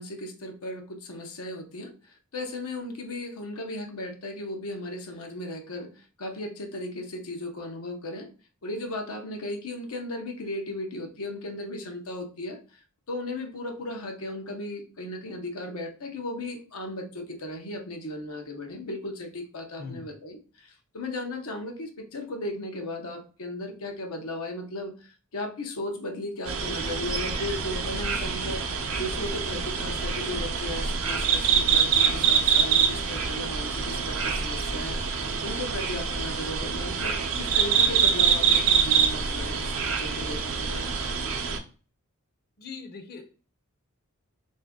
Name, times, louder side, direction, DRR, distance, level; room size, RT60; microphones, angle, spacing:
voice 1, 0.0-8.3 8.6-12.8 13.1-35.0 35.4-40.9, left 1 dB, 85° left, 4 dB, 0.8 m, -36 dB
sound 1, 26.5-41.6, right 6 dB, 65° right, 0.6 m, -25 dB
voice 2, 42.6-43.2, left 5 dB, 45° left, 4 dB, 0.6 m, -40 dB
3.5 x 2.7 x 3.5 m, 0.37 s
head